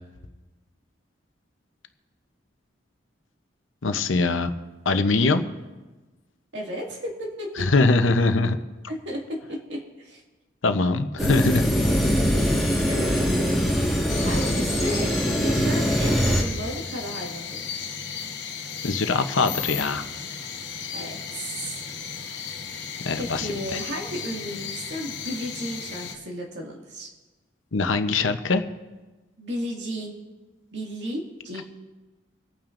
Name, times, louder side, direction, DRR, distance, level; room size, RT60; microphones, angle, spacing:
voice 1, 3.8-4.5 4.8-5.4 7.6-8.6 10.6-11.7 18.8-20.0 23.0-23.8 27.7-28.6, left 3 dB, 85° left, 8 dB, 0.8 m, -22 dB
voice 2, 6.5-7.7 8.9-9.2 9.5-10.2 12.9-13.6 14.2-17.9 20.9-21.9 23.2-27.1 29.4-30.2 30.7-31.6, equal, 65° right, -1 dB, 2.1 m, -34 dB
sound 1, 11.2-16.4, equal, ahead, 1.6 m, -22 dB
sound 2, 14.1-26.1, left 6 dB, 60° left, 1.1 m, -35 dB
26.0 x 8.9 x 2.6 m, 1.2 s
head